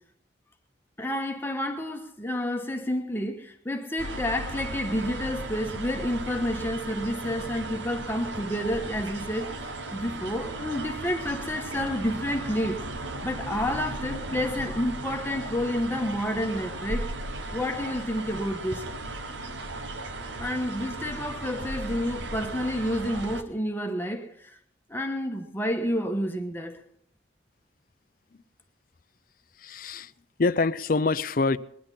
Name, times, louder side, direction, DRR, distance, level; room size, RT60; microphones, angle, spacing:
voice 1, 1.0-17.1 17.5-18.9 20.4-24.6 24.9-26.8, left 1 dB, 10° left, 1.1 m, -30 dB
sound 1, 4.0-23.4, right 2 dB, 80° right, 1.2 m, -36 dB
voice 2, 29.6-30.1 30.4-31.6, left 3 dB, 50° left, 0.5 m, -25 dB
20.5 x 10.5 x 5.6 m
head